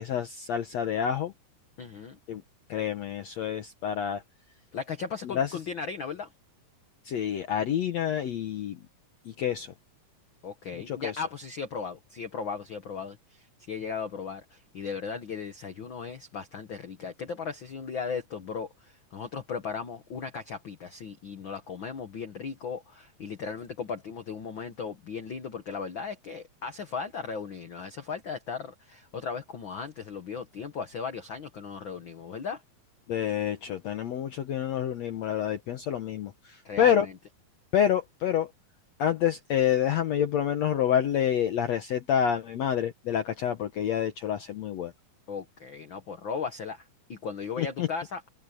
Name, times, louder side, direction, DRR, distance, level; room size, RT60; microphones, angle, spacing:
voice 1, 0.0-1.3 2.3-2.4 2.7-4.2 5.2-5.5 7.1-8.8 9.3-9.7 10.9-11.1 33.1-37.1 37.7-38.5 39.0-44.9 47.6-47.9, left 9 dB, 65° left, 1.8 m, -28 dB
voice 2, 1.8-2.2 4.7-6.3 10.4-32.6 36.6-37.1 45.3-48.2, left 5 dB, 85° left, 1.0 m, -37 dB
omnidirectional pair, 4.2 m